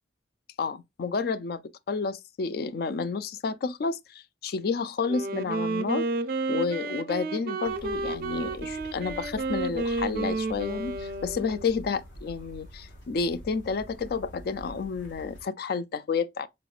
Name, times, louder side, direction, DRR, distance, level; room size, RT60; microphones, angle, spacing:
voice 1, 0.6-1.6 1.9-6.1 6.5-16.5, left 5 dB, 55° left, 0.3 m, -30 dB
Wind instrument woodwind instrument, 5.1-11.8, right 3 dB, 50° right, 0.4 m, -31 dB
sound 1, 7.6-15.4, equal, 80° left, 1.7 m, -46 dB
3.9 x 3.2 x 2.3 m
head